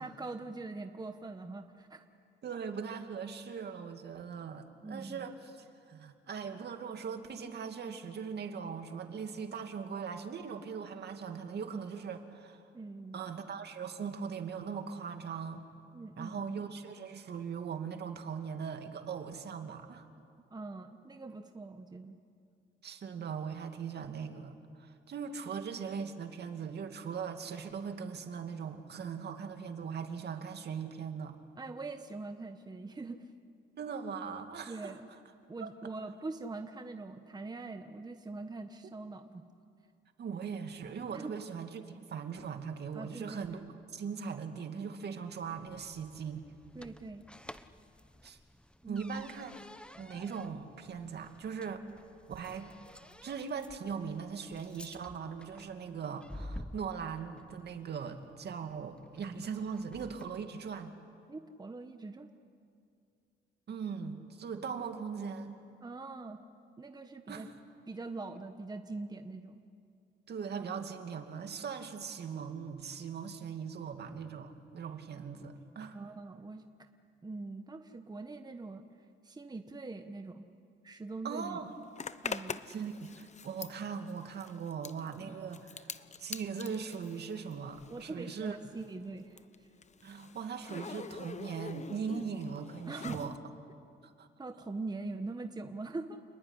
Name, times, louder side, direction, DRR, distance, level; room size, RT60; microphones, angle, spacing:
voice 1, 0.0-2.0 4.8-5.3 12.7-13.2 15.9-16.5 20.5-22.2 31.6-33.2 34.7-35.1 35.5-39.4 41.1-41.3 42.9-43.4 46.7-47.2 48.8-49.0 61.3-62.3 65.8-66.4 66.8-67.5 67.9-69.6 75.9-76.9 77.2-78.8 79.2-80.4 80.8-81.7 82.2-82.6 85.2-85.4 87.9-89.4 92.8-93.3 94.4-96.2, right 3 dB, 20° right, 6 dB, 1.3 m, -43 dB
voice 2, 2.4-12.6 13.1-15.6 16.2-20.1 22.8-31.4 33.8-34.9 35.6-35.9 40.2-43.6 43.9-46.4 48.2-48.4 48.9-49.5 50.0-51.8 52.3-52.7 53.2-60.9 63.7-65.6 67.3-67.5 70.3-76.1 81.2-81.7 82.7-88.6 90.0-93.4 94.0-94.3, right 6 dB, 55° right, 6 dB, 2.5 m, -40 dB
sound 1, 45.4-60.5, left 1 dB, 5° left, 0.9 m, -52 dB
Zipper (clothing), 82.0-88.1 88.4-93.4, left 6 dB, 35° left, 1.0 m, -45 dB
29.0 x 20.5 x 9.9 m, 2.5 s
cardioid pair, 90°, 20 cm